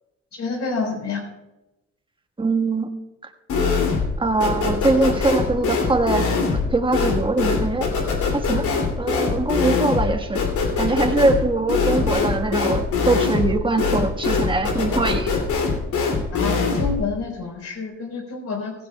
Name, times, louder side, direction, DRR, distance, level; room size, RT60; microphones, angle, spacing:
voice 1, 0.3-1.2 16.3-18.7, left 4 dB, 60° left, 2 dB, 4.4 m, -28 dB
voice 2, 2.4-2.9 4.2-6.3 6.7-7.9 8.3-8.6 9.0-10.4 10.8-15.3, right 2 dB, 15° right, 5 dB, 1.4 m, -22 dB
sound 1, 3.5-4.2 4.4-17.0, left 4 dB, 75° left, 2.7 m, -22 dB
16.5 x 15.5 x 2.3 m, 0.97 s
cardioid pair, 90°, 30 cm